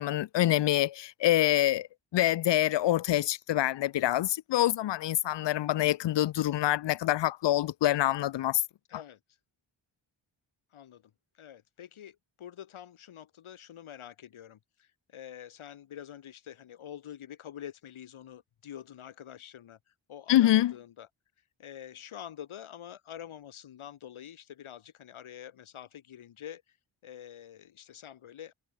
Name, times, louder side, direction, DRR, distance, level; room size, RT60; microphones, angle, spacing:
voice 1, 0.0-1.9 2.1-8.6 20.3-20.7, left 13 dB, 60° left, 0.5 m, -26 dB
voice 2, 8.9-9.2 10.7-11.0 11.3-19.8 20.1-21.1 21.6-26.8 27.0-28.5, left 10 dB, 85° left, 1.0 m, -46 dB
cardioid pair, 50°, 48 cm